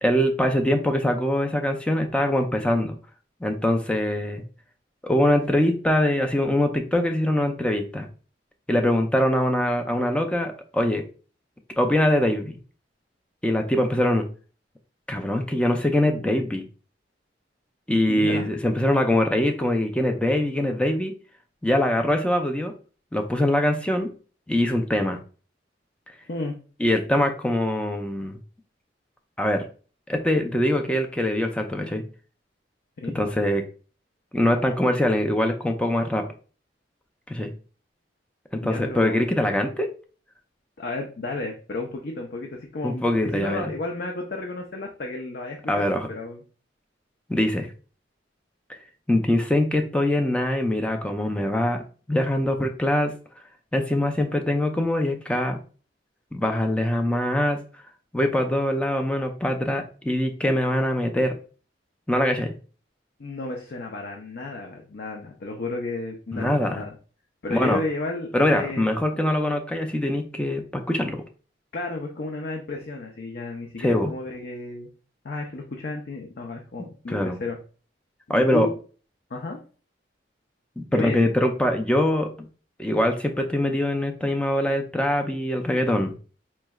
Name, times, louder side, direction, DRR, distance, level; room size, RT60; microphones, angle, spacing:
voice 1, 0.0-2.9 3.4-4.4 5.0-8.1 8.7-11.0 11.8-12.6 13.4-14.2 15.1-16.7 17.9-21.1 21.6-22.7 23.1-24.1 24.5-25.2 26.8-28.4 29.4-29.6 30.1-32.0 33.1-33.6 34.3-36.3 37.3-37.5 38.5-39.9 42.8-43.7 45.7-46.1 47.3-47.7 48.7-48.8 49.1-51.8 52.1-53.1 53.7-55.6 56.3-57.6 58.1-61.3 62.1-62.5 66.3-66.8 67.5-67.8 68.3-71.2 73.8-74.1 77.1-77.4 78.3-78.7 80.8-82.3 82.8-86.1, left 1 dB, 5° left, 5 dB, 0.4 m, -23 dB
voice 2, 18.1-18.5 26.3-26.5 33.0-33.2 38.6-39.2 40.8-46.4 63.2-66.9 67.4-68.8 71.7-74.9 75.2-77.6 78.3-78.7 79.3-79.6 80.9-81.3, left 2 dB, 55° left, 0 dB, 0.6 m, -32 dB
4.5 x 3.1 x 2.3 m, 0.38 s
head